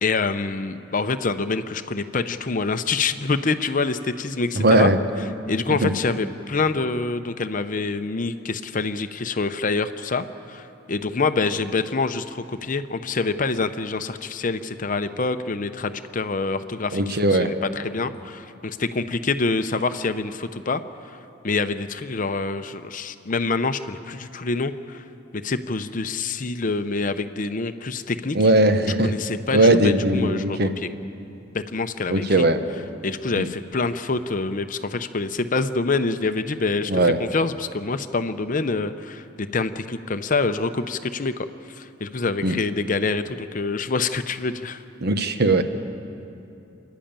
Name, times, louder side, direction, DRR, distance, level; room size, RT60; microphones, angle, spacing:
voice 1, 0.0-4.9 5.5-21.2 21.4-25.1 25.3-28.4 29.0-30.9 31.5-32.5 33.0-44.8, left 3 dB, 45° left, 10 dB, 0.7 m, -26 dB
voice 2, 4.5-5.0 5.8-5.9 16.9-17.5 28.3-29.1 29.5-30.7 32.1-32.6 33.4-33.5 36.9-37.2 42.4-42.6 45.0-45.6, right 2 dB, 55° right, 9 dB, 1.1 m, -19 dB
28.0 x 11.5 x 8.9 m, 2.8 s
head